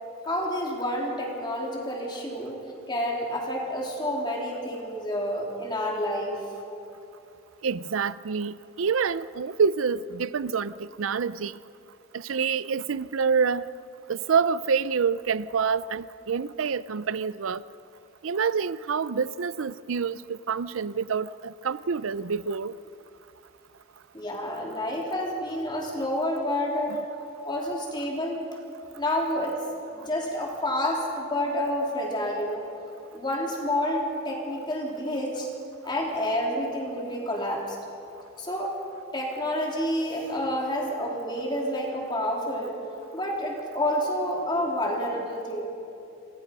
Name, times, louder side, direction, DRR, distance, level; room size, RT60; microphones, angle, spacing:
voice 1, 0.3-2.6 2.9-6.4 24.1-27.0 27.4-28.4 29.0-29.6 29.9-32.7 33.1-35.5 35.8-37.8 38.4-38.8 39.1-42.8 43.1-45.6, left 1 dB, 25° left, 3.7 m, -29 dB
voice 2, 7.6-11.6 12.1-13.7 14.1-17.6 18.2-22.7, right 6 dB, 85° right, 0.5 m, -27 dB
27.0 x 27.0 x 5.5 m
head